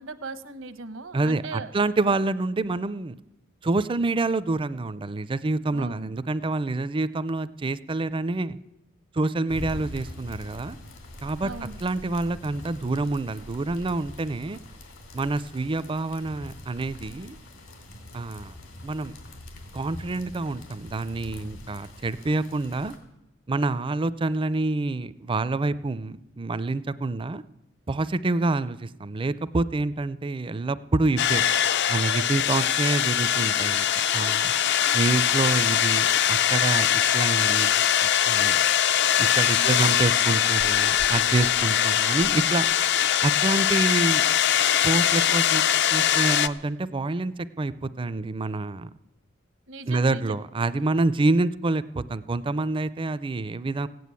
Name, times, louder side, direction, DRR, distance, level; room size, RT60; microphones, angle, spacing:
voice 1, 0.0-1.7 5.7-6.1 11.4-11.8 39.6-39.9 49.7-50.4, right 3 dB, 80° right, 11 dB, 1.0 m, -38 dB
voice 2, 1.1-3.1 3.6-8.6 9.1-10.8 11.2-11.5 11.8-14.6 15.1-17.4 18.1-18.5 18.8-19.1 19.7-22.9 23.5-27.4 27.9-31.5 31.9-33.8 34.1-34.5 34.9-37.7 38.0-38.6 39.2-42.7 43.2-44.2 44.8-45.6 45.9-48.9 49.9-53.9, right 2 dB, 25° right, 16 dB, 0.4 m, -27 dB
sound 1, 9.5-23.0, left 1 dB, 80° left, 3.0 m, -43 dB
sound 2, 31.2-46.5, left 10 dB, 60° left, 0.5 m, -22 dB
16.0 x 9.4 x 8.3 m, 0.90 s
head